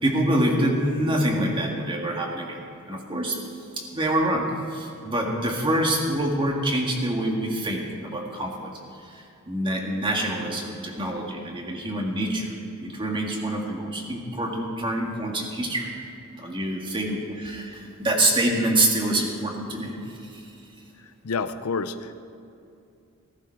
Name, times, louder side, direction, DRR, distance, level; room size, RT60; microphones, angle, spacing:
voice 1, 0.0-2.6 2.9-3.4 3.8-4.4 4.7-8.7 9.0-12.5 12.8-16.0 16.4-20.4, right 1 dB, 25° right, 0 dB, 1.9 m, -26 dB
voice 2, 21.0-22.2, left 4 dB, 80° left, 11 dB, 0.6 m, -30 dB
15.0 x 14.5 x 4.6 m, 2.6 s
head